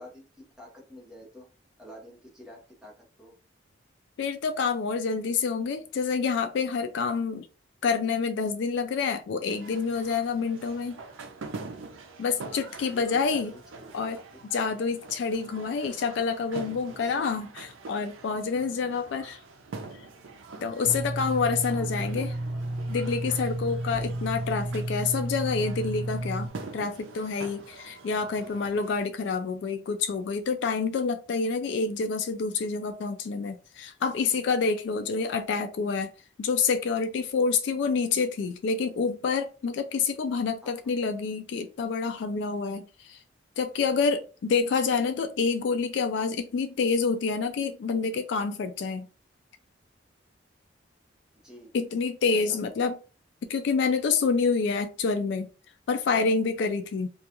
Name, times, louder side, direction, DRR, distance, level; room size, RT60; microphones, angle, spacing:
voice 1, 0.0-1.5 1.8-3.4 12.8-14.4 17.0-17.3 21.7-22.4 40.6-40.9 51.3-51.7 52.3-52.6, left 1 dB, 5° right, 0.9 m, -49 dB
voice 2, 4.2-7.5 7.8-11.0 12.2-13.5 13.9-14.2 14.5-19.4 20.6-22.3 22.9-36.1 36.4-43.2 43.6-49.1 51.7-53.0 53.5-55.5 55.9-57.1, left 5 dB, 65° left, 0.3 m, -28 dB
sound 1, 9.5-29.1, right 3 dB, 90° right, 0.5 m, -45 dB
sound 2, 20.8-26.5, right 1 dB, 25° right, 0.4 m, -32 dB
2.4 x 2.2 x 2.8 m
head